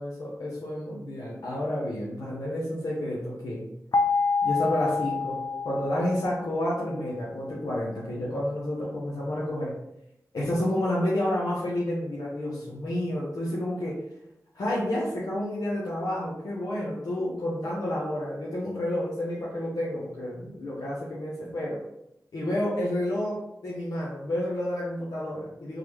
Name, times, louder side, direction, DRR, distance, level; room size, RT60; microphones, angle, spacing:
voice 1, 0.0-3.7 4.4-9.7 10.3-14.0 14.5-21.8 22.3-25.8, left 1 dB, 85° left, -7 dB, 0.8 m, -30 dB
sound 1, 3.9-6.9, left 4 dB, 70° left, 0.4 m, -27 dB
3.8 x 3.2 x 3.1 m, 0.83 s
cardioid pair, 45°, 6 cm